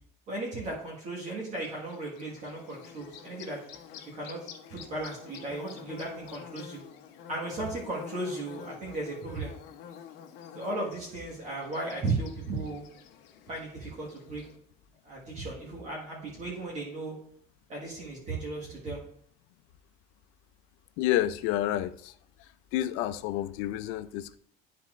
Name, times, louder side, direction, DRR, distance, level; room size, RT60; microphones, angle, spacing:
voice 1, 0.3-3.6 4.1-6.8 7.3-9.5 10.5-12.8 13.5-14.4 15.0-17.1 17.7-19.0, right 2 dB, 35° right, 1.6 m, -36 dB
Bird / Buzz, 1.6-14.6, left 8 dB, 60° left, 0.9 m, -48 dB
voice 2, 21.0-22.1 22.7-24.4, left 13 dB, 75° left, 0.5 m, -29 dB
11.0 x 4.2 x 2.5 m
cardioid pair, 165°, 20 cm